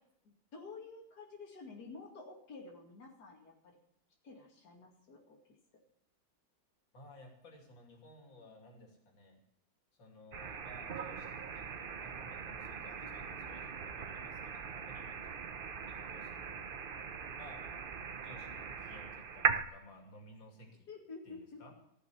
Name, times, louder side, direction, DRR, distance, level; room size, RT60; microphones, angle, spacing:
voice 1, 0.2-3.8 4.2-5.4 13.0-13.1 20.9-21.6, left 4 dB, 60° left, -1 dB, 2.9 m, -50 dB
voice 2, 6.9-9.4 10.0-15.4 15.8-16.7 17.3-17.6 18.2-20.9 21.2-21.7, left 1 dB, 85° left, 2 dB, 3.4 m, -56 dB
sound 1, 10.3-19.6, right 6 dB, 60° right, 0.5 m, -40 dB
15.5 x 6.4 x 9.9 m, 0.74 s
omnidirectional pair, 2.0 m